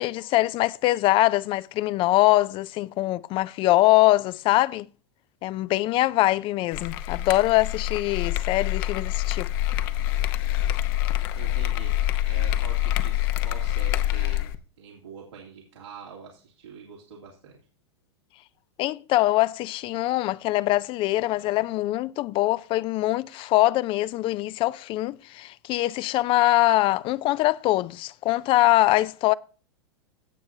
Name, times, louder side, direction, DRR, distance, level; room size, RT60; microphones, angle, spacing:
voice 1, 0.0-4.9 5.4-9.5 18.8-29.3, left 17 dB, 40° left, 0.4 m, -23 dB
sound 1, 6.7-14.5, left 13 dB, 55° left, 0.9 m, -26 dB
voice 2, 11.3-11.9 12.2-14.5 14.8-17.6, right 6 dB, 90° right, 2.8 m, -44 dB
16.5 x 6.5 x 2.7 m
hypercardioid pair, 105°, 14 cm